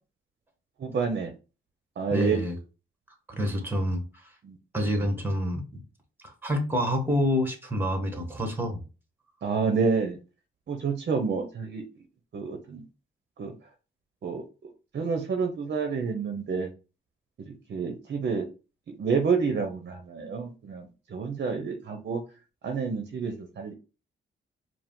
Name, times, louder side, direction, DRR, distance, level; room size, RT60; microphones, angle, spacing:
voice 1, 0.8-1.3 2.0-2.4 4.4-4.6 9.4-10.2 10.7-11.9 12.3-12.8 13.4-13.5 14.2-14.4 14.9-16.7 17.4-18.5 18.9-22.2 22.6-23.7, right 5 dB, 55° right, 0.7 m, -29 dB
voice 2, 2.1-2.5 3.3-4.0 4.7-5.8 6.2-8.8, equal, 10° right, 1.1 m, -27 dB
4.7 x 2.0 x 3.6 m
cardioid pair, 90°, 20 cm